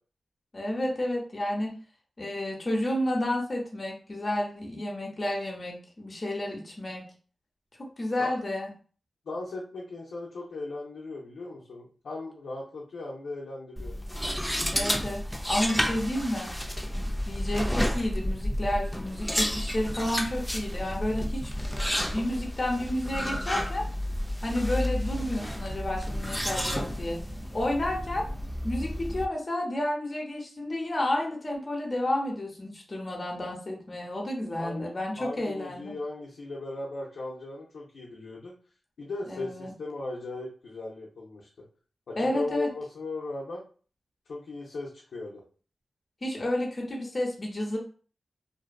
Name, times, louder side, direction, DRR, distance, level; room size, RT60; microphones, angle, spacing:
voice 1, 0.5-1.7 2.2-7.0 7.8-8.7 14.7-16.5 16.9-21.5 22.0-23.8 24.4-27.2 27.5-28.2 28.6-35.9 39.3-39.7 42.2-42.7 46.2-47.8, left 1 dB, 45° left, -2 dB, 0.8 m, -31 dB
voice 2, 9.3-14.0 34.6-38.5 39.0-41.5 42.1-43.6 44.3-45.4, left 2 dB, 85° left, -5 dB, 0.5 m, -37 dB
sound 1, 13.8-29.2, equal, ahead, 0.4 m, -31 dB
2.5 x 2.3 x 2.2 m, 0.40 s
cardioid pair, 40°, 0 cm